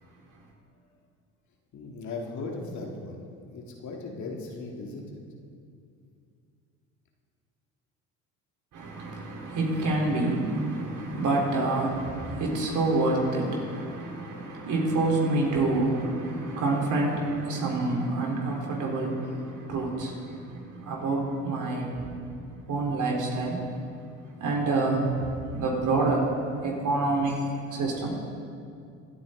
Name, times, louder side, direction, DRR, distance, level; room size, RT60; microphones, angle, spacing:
voice 1, 1.7-3.2 3.5-5.2, left 3 dB, 50° left, 0 dB, 2.3 m, -37 dB
voice 2, 8.7-22.3 22.7-23.6 24.4-26.2 26.6-28.2, right 2 dB, 55° right, -2 dB, 3.8 m, -27 dB
25.0 x 8.7 x 3.8 m, 2.4 s
hypercardioid pair, 70°, 37 cm